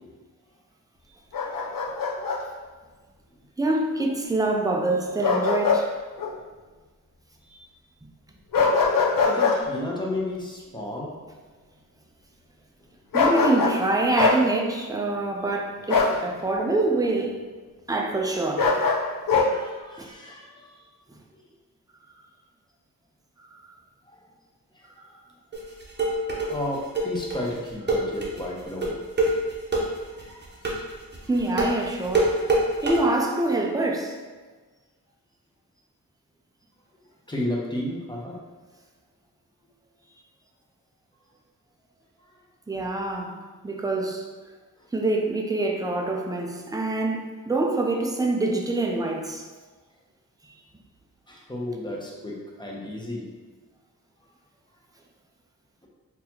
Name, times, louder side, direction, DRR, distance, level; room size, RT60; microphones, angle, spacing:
Bark, 1.3-2.4 5.2-5.8 6.2-6.3 8.5-9.6 13.1-13.8 14.2-14.4 15.9-16.2 18.6-19.5, left 4 dB, 70° left, 0.6 m, -22 dB
voice 1, 3.6-5.9 13.1-17.4 17.9-18.7 20.0-20.1 23.5-23.6 31.3-32.5 32.8-34.2 42.7-43.4 43.6-44.2 44.9-49.5, right 2 dB, 10° right, 0.4 m, -25 dB
voice 2, 9.0-11.1 19.4-20.8 24.1-24.2 26.5-28.9 30.1-30.5 37.3-38.4 42.7-42.9 51.3-53.3, left 1 dB, 15° left, 0.7 m, -33 dB
sound 1, 25.5-33.0, right 2 dB, 30° right, 0.8 m, -25 dB
3.9 x 2.8 x 2.8 m
wide cardioid pair, 105°, 35 cm